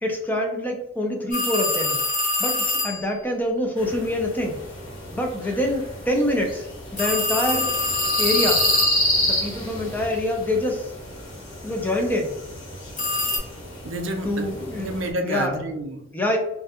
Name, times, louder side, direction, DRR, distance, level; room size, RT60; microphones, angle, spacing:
voice 1, 0.0-2.0 2.4-4.6 5.1-6.7 6.9-7.7 8.2-8.7 9.2-10.9 11.6-12.4 14.2-14.9 15.2-15.5 16.1-16.4, left 1 dB, 10° left, 1 dB, 0.4 m, -25 dB
sound 1, 1.3-3.0 7.0-9.3 13.0-13.4, left 2 dB, 40° left, 1.0 m, -25 dB
sound 2, 3.8-15.1, left 1 dB, 85° left, 1.0 m, -29 dB
voice 2, 13.8-16.1, right 1 dB, 60° right, 4 dB, 0.4 m, -29 dB
2.3 x 2.1 x 2.8 m, 0.83 s
head